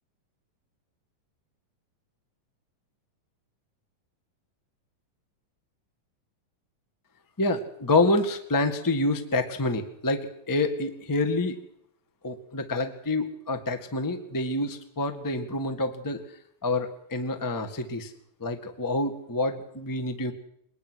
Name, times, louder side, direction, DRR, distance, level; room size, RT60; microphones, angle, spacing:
voice 1, 7.4-11.6 12.2-16.2 16.6-18.1 18.4-20.3, left 2 dB, 15° left, 7 dB, 0.6 m, -27 dB
23.0 x 20.5 x 6.4 m, 0.71 s
omnidirectional pair, 4.2 m